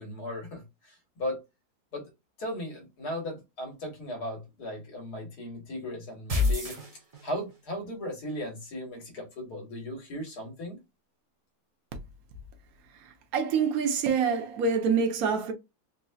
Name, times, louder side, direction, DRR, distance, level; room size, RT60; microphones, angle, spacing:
voice 1, 0.0-1.4 1.9-2.1 2.4-6.8 7.2-10.8, left 1 dB, 85° left, 1.9 m, -37 dB
sound 1, 6.3-7.6, left 3 dB, 40° right, 0.5 m, -27 dB
voice 2, 13.3-15.5, right 5 dB, 70° right, 1.2 m, -26 dB
4.0 x 2.7 x 2.3 m
omnidirectional pair, 1.7 m